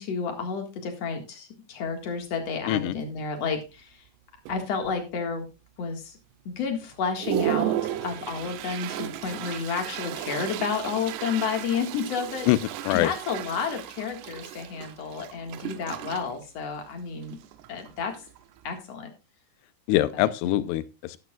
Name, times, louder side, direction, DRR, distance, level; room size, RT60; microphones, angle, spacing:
voice 1, 0.0-4.0 4.5-5.5 5.8-6.2 6.5-12.5 12.9-17.4 17.7-18.1 18.6-19.1 20.1-20.3, left 5 dB, 50° left, 4 dB, 2.2 m, -31 dB
Toilet flush, 1.9-2.0 2.5-2.7 3.0-3.6 4.1-4.2 4.5-5.2 5.7-5.8 6.3-6.4 6.8-18.8, right 12 dB, 85° right, 2.9 m, -35 dB
voice 2, 19.9-21.2, left 15 dB, 85° left, 14 dB, 2.8 m, -23 dB
12.0 x 11.5 x 2.4 m, 0.29 s
omnidirectional pair, 4.8 m